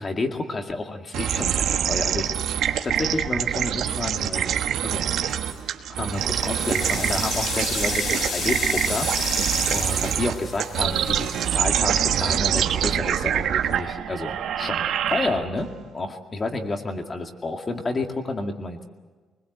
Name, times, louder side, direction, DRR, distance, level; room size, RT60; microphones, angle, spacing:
voice 1, 0.0-5.1 6.0-15.7 15.9-18.9, left 2 dB, 25° left, 4 dB, 2.1 m, -30 dB
Stereo Glitch, 1.1-15.7, right 9 dB, 85° right, 1.4 m, -25 dB
sound 1, 5.3-5.7 6.2-12.4, left 4 dB, 60° left, 3.4 m, -32 dB
24.0 x 21.0 x 8.0 m, 1.4 s
cardioid pair, 155°, 0 cm